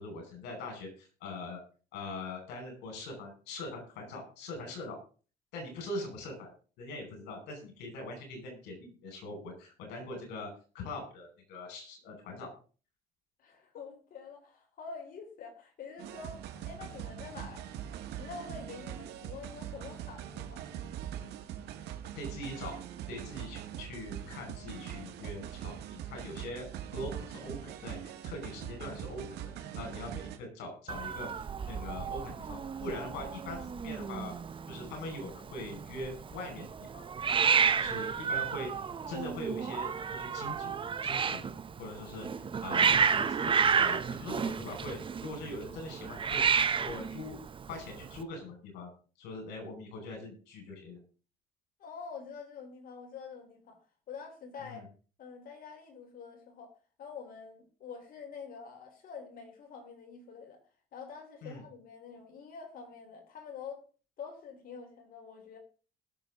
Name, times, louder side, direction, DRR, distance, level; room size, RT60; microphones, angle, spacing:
voice 1, 0.0-1.6 1.9-5.0 5.5-6.5 6.8-12.5 22.2-22.7 23.1-26.7 26.9-28.0 28.2-29.2 29.6-34.3 34.7-36.7 36.9-37.0 37.7-38.7 39.1-40.7 41.0-47.3 47.7-48.9 49.2-51.0 54.6-54.9 61.4-61.6, left 2 dB, 85° left, 5.5 m, -42 dB
voice 2, 13.4-17.6 18.1-20.7 42.3-42.6 51.8-53.8 54.1-54.8 55.2-56.7 57.0-60.6 60.9-63.8 64.2-65.6, left 5 dB, 55° left, 4.0 m, -46 dB
sound 1, 16.0-30.4, right 10 dB, 75° right, 1.8 m, -42 dB
Hiss, 30.9-48.2, right 6 dB, 30° right, 0.8 m, -31 dB
20.0 x 7.0 x 3.8 m
cardioid pair, 110°, 17 cm